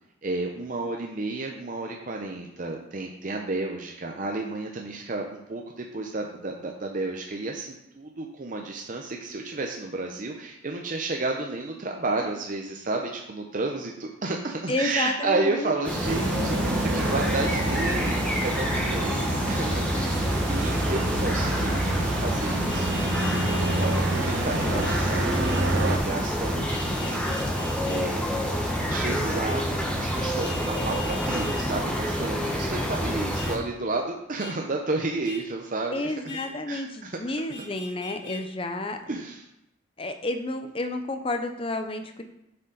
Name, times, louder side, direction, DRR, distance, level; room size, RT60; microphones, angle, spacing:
voice 1, 0.2-25.3 25.5-28.3 28.9-36.1 36.7-37.2 39.1-39.4, right 2 dB, 40° right, 1 dB, 0.6 m, -32 dB
voice 2, 14.7-15.7 16.0-16.2 35.9-39.2 40.0-42.2, left 2 dB, 25° left, 7 dB, 0.6 m, -31 dB
sound 1, 15.8-33.6, equal, 5° left, 1.0 m, -28 dB
sound 2, 16.0-26.0, right 2 dB, 65° right, 1.0 m, -28 dB
Vehicle horn car horn honking, 22.7-23.9 24.8-25.0 25.4-25.7 26.7-28.1 30.4-31.7 33.3-33.5 34.4-34.5 35.2-35.4 36.3-36.5 37.5-38.4, left 3 dB, 70° left, 1.7 m, -40 dB
7.3 x 6.8 x 3.9 m, 0.83 s
head